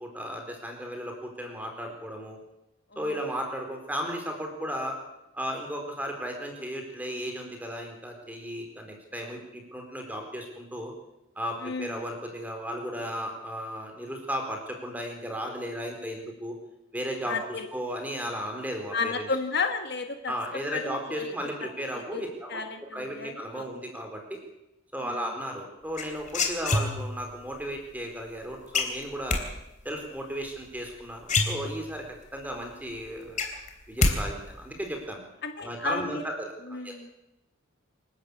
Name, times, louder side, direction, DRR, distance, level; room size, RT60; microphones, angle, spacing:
voice 1, 0.0-2.4 3.0-5.0 5.3-10.9 11.4-16.5 16.9-17.4 17.7-19.3 20.3-22.6 22.9-24.4 24.9-29.4 29.8-32.0 32.3-33.5 33.9-35.2 35.6-36.9, equal, 10° right, 3 dB, 4.2 m, -35 dB
voice 2, 2.9-3.2 11.6-12.0 17.3-17.7 18.9-20.3 20.7-21.3 22.1-22.2 22.5-23.7 25.0-25.3 35.4-36.2 36.7-37.1, left 4 dB, 50° left, 6 dB, 1.6 m, -33 dB
sound 1, 26.0-27.3 28.7-29.4 30.8-30.9 31.2-32.1 32.5-32.6 32.9-34.2 34.4-34.9, left 3 dB, 35° left, 3.3 m, -26 dB
27.5 x 12.0 x 8.5 m, 0.93 s
head